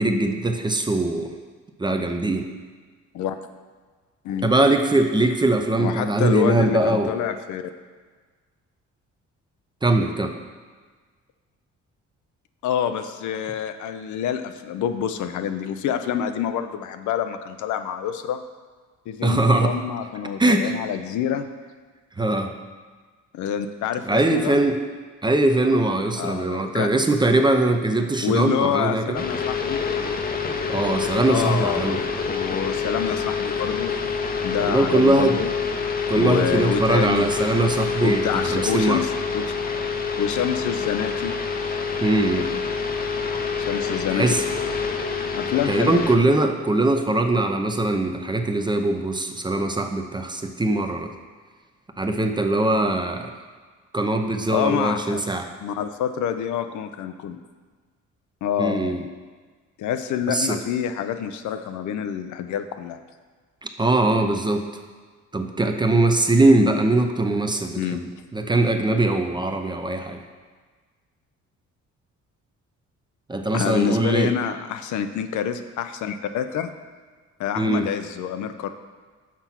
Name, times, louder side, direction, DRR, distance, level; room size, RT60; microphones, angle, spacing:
voice 1, 0.0-1.3 1.8-2.5 4.4-7.1 9.8-10.3 19.2-19.8 20.4-20.7 22.2-22.5 24.0-24.8 25.2-29.2 30.7-32.0 34.6-35.4 36.1-39.0 42.0-42.5 44.1-44.4 45.7-51.1 52.0-53.3 53.9-55.5 58.6-59.0 60.3-60.6 63.6-64.7 65.3-68.0 68.3-70.2 73.3-74.3 77.6-77.9, right 2 dB, 15° right, 5 dB, 0.6 m, -21 dB
voice 2, 4.2-4.6 5.8-7.6 12.6-18.4 19.1-21.5 23.3-24.6 26.2-26.9 28.2-29.8 31.3-33.9 34.4-35.5 36.1-37.3 38.0-39.5 40.2-41.4 43.6-44.3 45.3-46.0 54.5-55.2 55.6-57.4 58.4-59.1 59.8-63.0 67.8-68.0 73.5-76.7 77.4-78.7, left 8 dB, 75° left, 9 dB, 0.5 m, -27 dB
sound 1, 29.2-46.2, left 5 dB, 30° left, 0.7 m, -27 dB
6.0 x 4.5 x 5.7 m, 1.5 s
cardioid pair, 90°, 30 cm